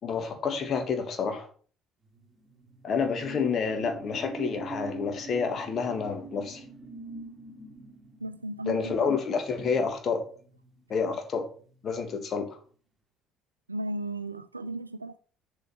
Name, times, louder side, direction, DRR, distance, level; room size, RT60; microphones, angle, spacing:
voice 1, 0.0-1.5 2.8-6.6 8.6-10.2 10.9-11.4 11.8-12.6, left 5 dB, 40° left, 1.7 m, -29 dB
sound 1, 2.1-11.1 11.4-11.7, right 3 dB, 10° right, 2.7 m, -44 dB
voice 2, 8.2-8.9 13.7-15.2, right 1 dB, 85° right, 0.4 m, -35 dB
6.9 x 6.3 x 4.5 m
figure-of-eight pair, 55°, 0 cm